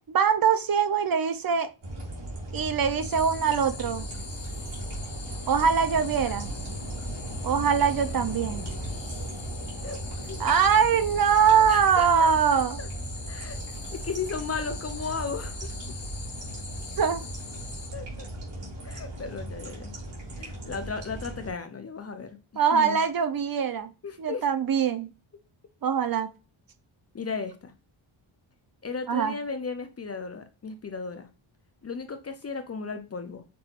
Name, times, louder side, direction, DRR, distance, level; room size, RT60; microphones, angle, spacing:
voice 1, 0.1-1.7 2.5-4.1 5.5-6.5 7.4-8.7 10.4-12.8 17.0-17.2 22.6-23.9 24.2-25.1 25.8-26.3 29.1-29.3, right 7 dB, 45° right, 10 dB, 0.6 m, -23 dB
sound 1, 1.8-21.5, right 1 dB, 85° right, 2.6 m, -37 dB
sound 2, 3.0-17.9, left 5 dB, 75° left, 1.5 m, -43 dB
voice 2, 8.9-9.2 9.8-10.4 11.7-12.9 13.3-13.6 13.9-15.7 17.9-18.3 18.8-19.9 20.3-23.0 24.0-24.4 27.1-27.7 28.8-31.3 31.8-33.4, left 5 dB, 30° left, 8 dB, 0.5 m, -35 dB
6.0 x 3.1 x 2.4 m, 0.30 s
wide cardioid pair, 145°, 48 cm